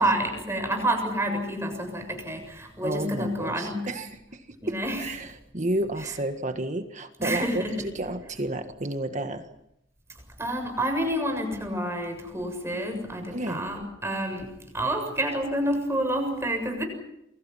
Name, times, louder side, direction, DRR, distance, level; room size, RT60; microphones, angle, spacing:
voice 1, 0.0-3.9 4.6-5.0 7.2-7.9 10.4-16.8, right 1 dB, 15° right, 5 dB, 7.2 m, -28 dB
voice 2, 2.8-9.4 13.3-13.7, right 1 dB, 40° right, 7 dB, 1.7 m, -31 dB
29.0 x 23.5 x 5.8 m, 0.80 s
head